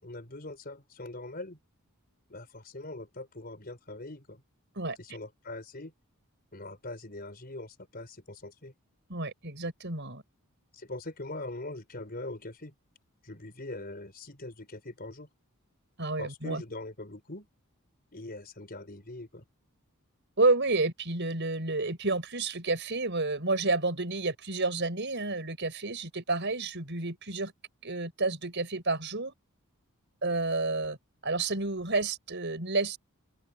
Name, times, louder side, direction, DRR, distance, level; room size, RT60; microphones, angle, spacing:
voice 1, 0.0-1.6 2.3-4.4 5.0-5.9 6.5-8.7 10.7-12.7 13.2-15.3 16.2-17.5 18.1-19.4, left 2 dB, 45° left, 4.4 m, -42 dB
voice 2, 9.1-10.2 16.0-16.6 20.4-27.5 27.8-29.3 30.2-31.0 31.2-33.0, right 3 dB, 55° right, 5.6 m, -30 dB
open air
head